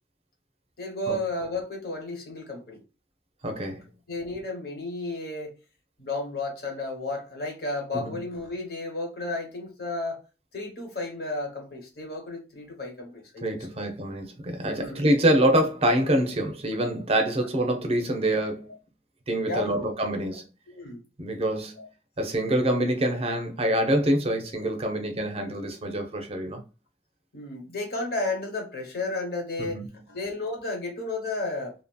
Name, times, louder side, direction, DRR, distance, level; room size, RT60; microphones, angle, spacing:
voice 1, 0.8-2.8 4.1-5.6 6.0-10.2 10.5-13.4 13.8-13.9 14.7-15.1 19.4-19.9 20.7-21.0 21.8-21.9 27.3-29.8 30.1-31.7, left 2 dB, 60° left, 1.2 m, -33 dB
voice 2, 3.4-3.8 7.9-8.2 13.4-18.7 19.3-20.4 21.2-21.8 22.2-26.6 29.6-29.9, right 1 dB, 35° right, 0.6 m, -25 dB
2.8 x 2.7 x 2.2 m
head